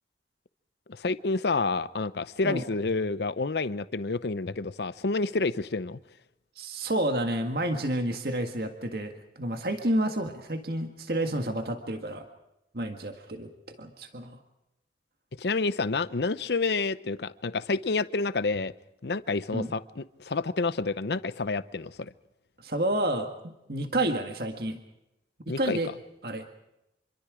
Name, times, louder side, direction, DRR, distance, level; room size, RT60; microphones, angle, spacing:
voice 1, 0.9-6.0 15.4-18.7 19.0-22.1 25.5-25.8, left 3 dB, 70° left, 15 dB, 0.7 m, -29 dB
voice 2, 6.6-12.3 12.7-13.5 13.8-14.4 19.5-19.7 22.6-24.8 25.5-25.9 26.2-26.5, right 1 dB, 60° right, 5 dB, 1.8 m, -30 dB
27.0 x 23.5 x 5.1 m, 0.89 s
head